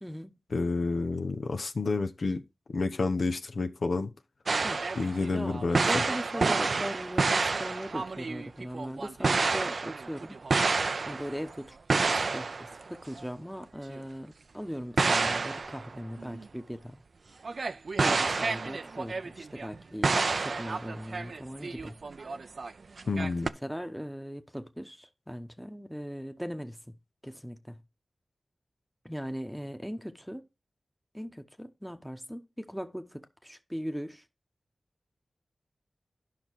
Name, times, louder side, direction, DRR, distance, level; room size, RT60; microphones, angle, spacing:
voice 1, 0.0-0.4 4.6-4.9 5.3-10.4 11.0-17.0 18.0-22.0 23.2-26.8 27.2-27.8 29.0-30.4 31.1-34.2, equal, ahead, 1.0 m, -39 dB
voice 2, 0.5-2.4 2.7-4.1 5.0-6.0 23.1-23.5, left 3 dB, 75° left, 0.8 m, -29 dB
sound 1, 4.5-11.5 11.9-12.8 13.2-13.3 13.9-14.0 15.0-16.5 17.4-19.8 20.0-22.7 23.0-23.5, right 4 dB, 70° right, 0.5 m, -29 dB
10.5 x 5.8 x 4.5 m
wide cardioid pair, 60°, 0 cm